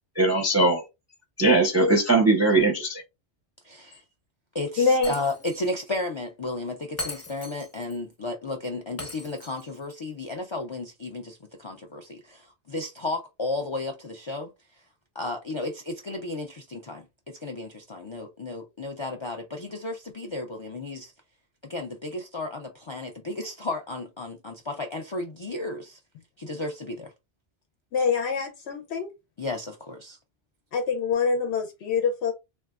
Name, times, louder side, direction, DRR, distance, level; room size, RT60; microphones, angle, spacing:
voice 1, 0.2-0.8 1.4-3.0, right 2 dB, 20° right, 0.5 m, -20 dB
voice 2, 3.6-4.0 4.5-14.5 15.2-21.1 21.7-26.0 26.4-27.1 29.4-30.2, left 2 dB, 50° left, 0.3 m, -33 dB
voice 3, 4.8-5.1 27.9-29.1 30.7-32.3, left 5 dB, 85° left, 0.9 m, -25 dB
Shatter, 5.0-5.7 5.9-6.0 7.0-8.0 9.0-10.0, left 1 dB, 15° left, 0.7 m, -38 dB
3.3 x 2.6 x 2.3 m
omnidirectional pair, 1.1 m